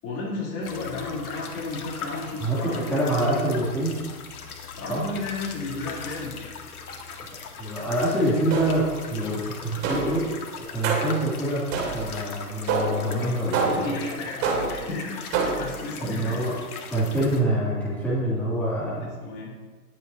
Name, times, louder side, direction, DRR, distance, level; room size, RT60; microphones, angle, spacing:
voice 1, 0.0-3.2 4.8-6.3 13.1-13.4 13.7-16.5 19.0-19.5, left 3 dB, 30° left, -4 dB, 3.3 m, -33 dB
sound 1, 0.6-17.4, left 5 dB, 65° left, 1.8 m, -40 dB
voice 2, 2.4-4.0 4.9-5.0 7.6-10.3 10.5-11.7 11.9-13.8 16.0-16.5 16.9-19.2, right 1 dB, 5° left, -10 dB, 2.9 m, -26 dB
sound 2, 8.5-9.0 9.8-10.3 10.8-11.2 11.7-12.2 12.7-13.1 13.5-14.0 14.4-14.9 15.3-15.8, right 4 dB, 30° right, 2.6 m, -26 dB
20.0 x 7.7 x 2.8 m, 1.4 s
hypercardioid pair, 130°, 48 cm